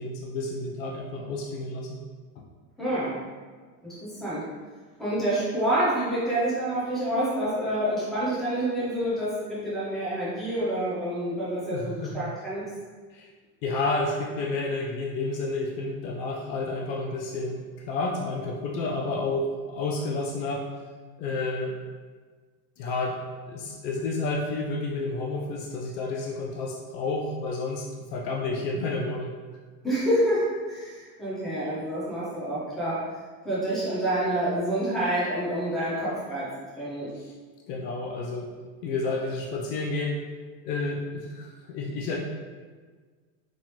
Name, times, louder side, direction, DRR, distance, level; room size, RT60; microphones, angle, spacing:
voice 1, 0.0-2.0 11.7-12.1 13.2-13.3 13.6-20.7 21.2-21.7 22.8-23.2 23.5-27.9 28.1-29.3 37.7-38.5 38.8-40.2 40.6-42.2, left 3 dB, 80° left, -1 dB, 0.8 m, -30 dB
voice 2, 2.8-3.1 3.8-4.4 5.0-12.6 29.8-33.0 33.4-36.5 36.8-37.1, right 1 dB, ahead, -9 dB, 0.3 m, -27 dB
4.1 x 3.2 x 2.9 m, 1.5 s
supercardioid pair, 155°, 49 cm